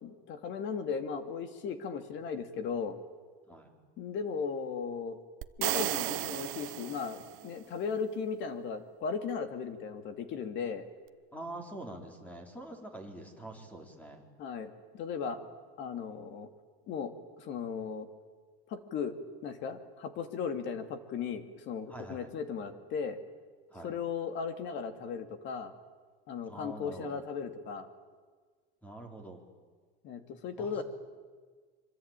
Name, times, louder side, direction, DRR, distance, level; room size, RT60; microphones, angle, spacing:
voice 1, 0.0-3.0 4.0-5.2 5.6-10.8 14.4-15.4 15.8-16.5 16.9-18.1 18.7-19.2 19.4-23.2 23.8-25.7 26.3-27.9 30.0-30.8, left 6 dB, 40° left, 8 dB, 2.6 m, -36 dB
sound 1, 5.4-7.5, right 18 dB, 45° right, 1.0 m, -34 dB
voice 2, 11.3-14.2 21.9-22.3 23.7-23.9 26.5-27.2 28.8-29.4 30.6-30.8, right 1 dB, 5° left, 4 dB, 4.0 m, -45 dB
25.5 x 25.0 x 9.1 m, 1.5 s
supercardioid pair, 155°, 29 cm